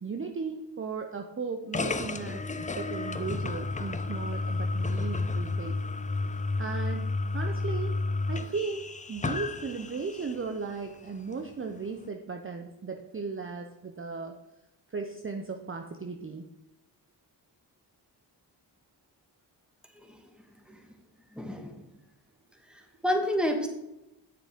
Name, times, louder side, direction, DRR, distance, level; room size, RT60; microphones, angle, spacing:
voice 1, 0.0-5.8 6.6-8.0 8.3-14.4 14.9-16.4, right 4 dB, 30° right, 4 dB, 0.7 m, -36 dB
sound 1, 1.7-10.5, left 3 dB, 20° left, 0.4 m, -31 dB
voice 2, 21.3-21.8 22.7-23.7, equal, ahead, 4 dB, 1.5 m, -30 dB
7.7 x 7.1 x 3.7 m, 0.92 s
cardioid pair, 45°, 42 cm